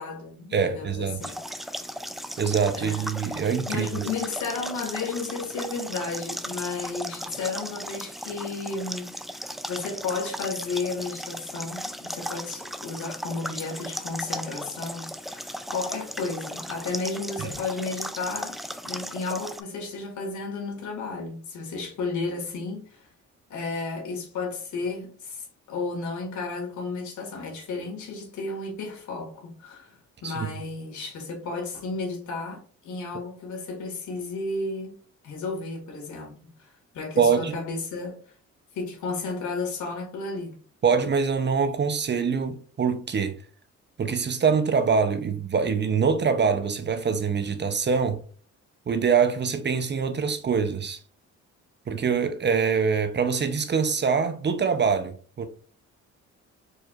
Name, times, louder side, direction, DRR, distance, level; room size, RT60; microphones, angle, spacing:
voice 1, 0.0-1.8 2.7-18.6 18.8-23.1 23.5-34.9 35.2-36.3 36.6-38.2 38.7-40.5, left 3 dB, 75° left, 2.0 m, -33 dB
voice 2, 0.5-1.2 2.4-4.1 17.4-17.5 30.2-30.5 37.2-37.6 40.8-43.4 44.0-48.2 48.9-51.0 51.9-55.5, right 6 dB, 35° right, 0.7 m, -24 dB
sound 1, 1.2-19.6, equal, ahead, 0.4 m, -36 dB
4.7 x 4.5 x 2.5 m
cardioid pair, 90°, 30 cm